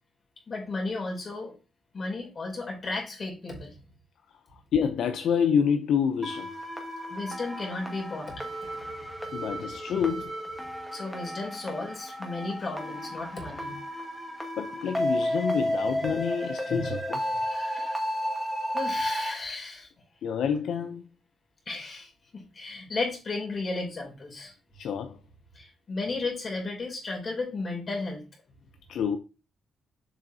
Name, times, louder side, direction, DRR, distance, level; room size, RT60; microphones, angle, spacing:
voice 1, 0.5-1.5 1.9-3.7 7.1-8.3 10.9-13.8 16.0-16.1 16.7-17.0 17.3-18.1 18.7-19.9 21.7-24.5 25.5-28.2, left 3 dB, 40° left, 2.8 m, -34 dB
voice 2, 4.7-6.5 9.3-10.3 14.6-17.2 20.2-21.0 24.8-25.2 28.9-29.2, left 7 dB, 75° left, 0.5 m, -27 dB
sound 1, 6.2-19.3, equal, 5° right, 1.2 m, -33 dB
7.0 x 5.4 x 2.7 m
cardioid pair, 130°, 0 cm